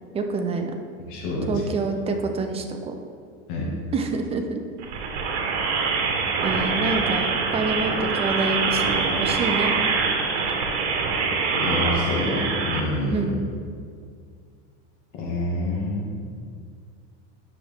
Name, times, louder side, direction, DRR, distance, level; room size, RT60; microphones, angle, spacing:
voice 1, 0.1-0.7 1.5-2.9 3.9-4.6 6.4-9.7 13.1-13.3, right 3 dB, 20° right, 5 dB, 0.6 m, -27 dB
voice 2, 1.1-1.7 3.5-3.7 11.5-13.3 15.1-16.2, left 1 dB, 65° left, -4 dB, 1.9 m, -27 dB
sound 1, 4.8-12.8, right 4 dB, 75° right, 1.3 m, -24 dB
9.8 x 6.4 x 3.5 m, 2.2 s
supercardioid pair, 140°, 33 cm